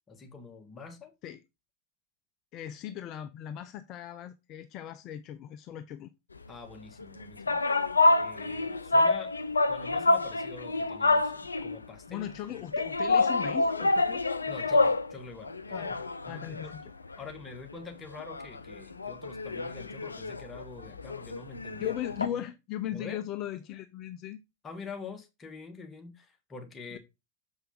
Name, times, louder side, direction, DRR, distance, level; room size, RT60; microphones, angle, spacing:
voice 1, 0.1-1.1 6.5-7.6 8.2-9.3 9.7-12.3 14.5-16.0 16.3-16.7 17.2-22.0 22.2-22.4 22.9-23.2 24.6-27.0, left 4 dB, 20° left, 1.8 m, -45 dB
voice 2, 2.5-6.1 12.1-14.2 15.7-16.0 16.2-16.9 21.7-24.4, left 11 dB, 35° left, 0.6 m, -38 dB
sound 1, 7.0-11.8 12.7-15.1 15.4-17.4 17.7-17.8 18.1-22.3, left 2 dB, 80° left, 0.5 m, -27 dB
7.0 x 5.7 x 3.9 m
figure-of-eight pair, 90°, 0 cm